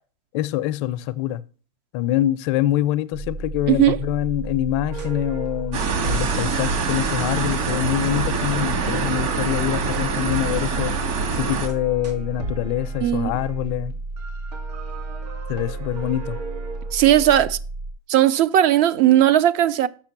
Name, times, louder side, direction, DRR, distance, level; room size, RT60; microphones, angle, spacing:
voice 1, 0.3-1.4 1.9-11.0 11.3-14.0 15.5-16.4, left 14 dB, 45° left, 0.5 m, -25 dB
sound 1, 3.1-17.9, right 2 dB, 70° right, 2.4 m, -33 dB
sound 2, 4.9-13.6 14.2-17.4, right 4 dB, 90° right, 1.8 m, -38 dB
sound 3, 5.7-11.7, right 4 dB, 55° right, 2.1 m, -25 dB
voice 2, 13.0-13.3 16.9-17.6 18.1-19.9, right 12 dB, 40° right, 0.5 m, -17 dB
6.8 x 5.8 x 5.9 m
hypercardioid pair, 135°, 20 cm